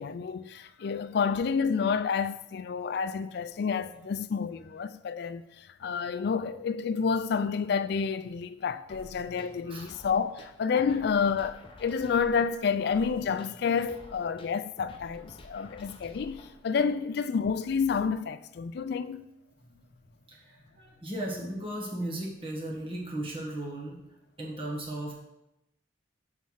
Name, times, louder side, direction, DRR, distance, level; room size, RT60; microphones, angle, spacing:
voice 1, 0.0-19.2, left 6 dB, 55° left, 0.3 m, -29 dB
sound 1, 8.9-16.9, left 1 dB, 25° left, 0.7 m, -51 dB
voice 2, 20.3-24.0 24.4-25.1, right 1 dB, 30° right, 1.4 m, -36 dB
5.6 x 4.6 x 5.6 m
head